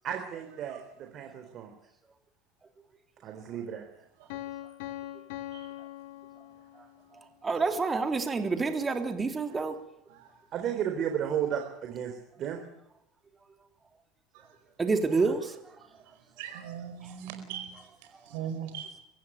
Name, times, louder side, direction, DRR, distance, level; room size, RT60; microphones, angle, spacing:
voice 1, 0.0-1.7 3.2-3.8 10.5-12.6 15.1-15.3, right 9 dB, 50° right, 4 dB, 3.9 m, -33 dB
Piano, 4.3-7.1, left 13 dB, 70° left, 2.7 m, -41 dB
voice 2, 7.4-9.8 14.8-15.5, right 4 dB, 25° right, 6 dB, 3.5 m, -28 dB
voice 3, 16.4-17.7 18.3-18.9, right 8 dB, 70° right, 7 dB, 4.8 m, -39 dB
24.0 x 15.0 x 9.4 m, 0.84 s
hypercardioid pair, 80°, 0 cm